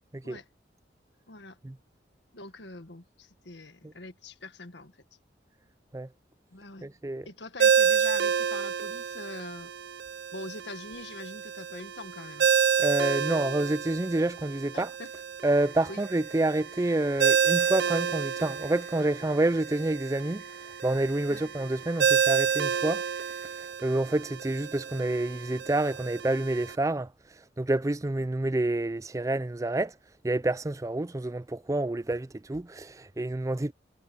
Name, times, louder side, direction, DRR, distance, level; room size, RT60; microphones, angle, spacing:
voice 1, 1.3-1.6 2.3-4.9 6.5-6.9 7.3-9.7 10.3-12.5 14.7-15.1 15.9-16.0 21.3-21.4, left 2 dB, 75° left, 1.8 m, -43 dB
voice 2, 6.8-7.3 12.8-14.9 15.4-20.4 20.8-23.0 23.4-27.1 27.6-29.9 30.2-33.7, right 2 dB, 15° right, 0.4 m, -28 dB
Ringtone, 7.6-26.7, right 7 dB, 70° right, 0.6 m, -29 dB
sound 1, 15.6-23.5, left 2 dB, 15° left, 7.5 m, -56 dB
head